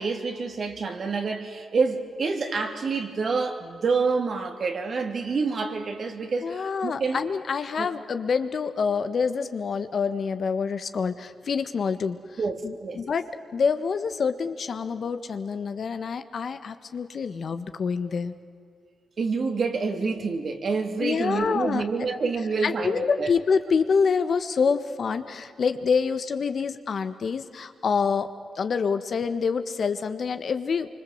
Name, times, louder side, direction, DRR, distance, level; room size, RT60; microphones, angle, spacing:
voice 1, 0.0-7.2 7.8-7.9 12.4-13.0 19.2-23.3, right 4 dB, 55° right, 4 dB, 3.1 m, -27 dB
voice 2, 6.4-12.2 12.6-13.2 13.5-18.3 21.0-21.8 22.6-28.3 28.5-30.9, left 5 dB, 60° left, 9 dB, 1.5 m, -26 dB
26.0 x 25.0 x 8.0 m, 2.2 s
cardioid pair, 75°, 0 cm